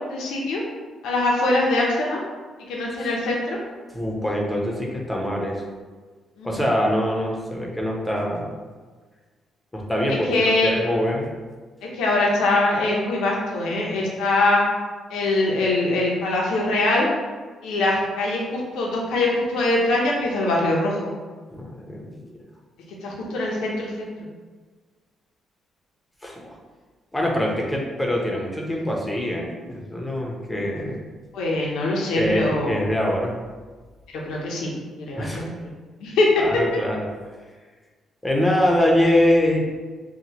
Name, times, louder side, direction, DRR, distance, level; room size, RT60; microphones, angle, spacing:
voice 1, 0.1-0.6 1.0-2.2 2.7-3.6 6.4-6.6 10.3-10.7 11.9-14.6 15.1-17.1 17.6-21.1 23.0-24.1 31.3-32.7 34.2-34.7 35.0-35.7 36.0-36.4, left 2 dB, 85° left, -3 dB, 0.8 m, -22 dB
voice 2, 3.9-5.6 6.4-8.5 9.7-11.3 21.5-22.2 26.2-26.5 27.1-31.0 32.2-33.3 35.2-35.5 36.4-37.1 38.2-39.6, left 1 dB, 10° left, -1 dB, 0.9 m, -24 dB
5.7 x 2.4 x 2.9 m, 1.4 s
cardioid pair, 90°, 0 cm